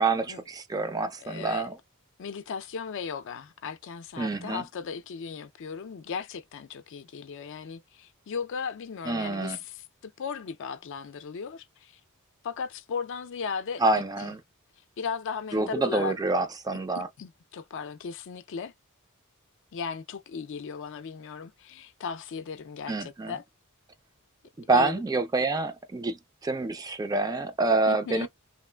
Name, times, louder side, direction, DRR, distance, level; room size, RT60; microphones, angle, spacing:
voice 1, 0.0-1.8 4.2-4.6 9.1-9.6 13.8-14.4 15.5-17.1 22.9-23.4 24.7-28.3, right 3 dB, 15° right, 0.4 m, -27 dB
voice 2, 1.2-1.7 2.2-11.9 12.4-13.8 14.2-14.3 15.0-16.1 17.2-18.7 19.7-23.4 24.6-25.0 27.9-28.3, left 6 dB, 60° left, 0.4 m, -36 dB
3.0 x 2.4 x 2.2 m
head